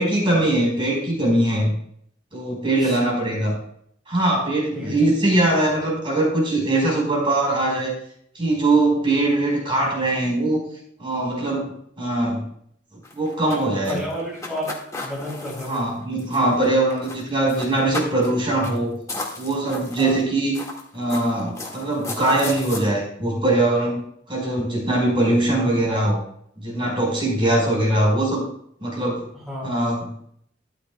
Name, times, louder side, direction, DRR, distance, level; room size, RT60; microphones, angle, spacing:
voice 1, 0.0-1.7 2.3-3.6 4.1-8.0 8.3-10.7 11.0-12.4 13.1-14.0 15.6-19.0 19.4-20.5 20.9-24.0 24.3-26.2 26.6-28.4 28.8-29.3 29.6-30.1, right 2 dB, 30° right, -2 dB, 4.4 m, -21 dB
sound 1, 13.0-16.6 16.9-17.2 17.5-18.3 18.6-18.8 19.1-20.2 20.5-22.8, left 2 dB, 20° left, 1.9 m, -34 dB
voice 2, 13.9-15.9 20.0-20.2 29.3-29.8, equal, ahead, -5 dB, 3.9 m, -32 dB
13.5 x 11.0 x 2.3 m, 0.66 s
head